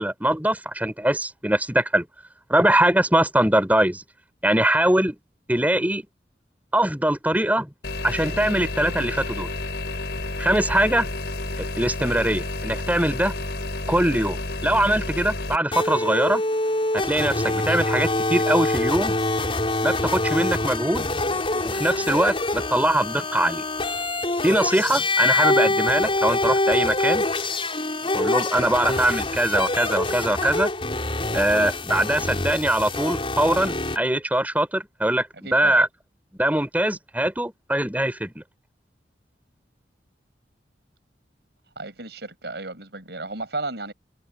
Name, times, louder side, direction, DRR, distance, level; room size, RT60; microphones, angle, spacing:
voice 1, 0.0-2.1 2.5-4.0 4.4-5.1 5.5-6.0 6.7-7.7 8.0-9.5 10.4-11.1 11.6-13.3 13.9-16.4 16.9-19.1 19.8-21.1 21.6-23.6 24.4-27.2 28.1-30.7 31.3-35.9 36.4-38.4, right 1 dB, 10° right, 5.0 m, -22 dB
sound 1, 7.8-15.6, left 2 dB, 65° left, 5.5 m, -30 dB
sound 2, 15.7-34.0, left 2 dB, 30° left, 4.9 m, -25 dB
voice 2, 35.4-35.8 41.7-43.9, right 2 dB, 70° right, 6.8 m, -33 dB
head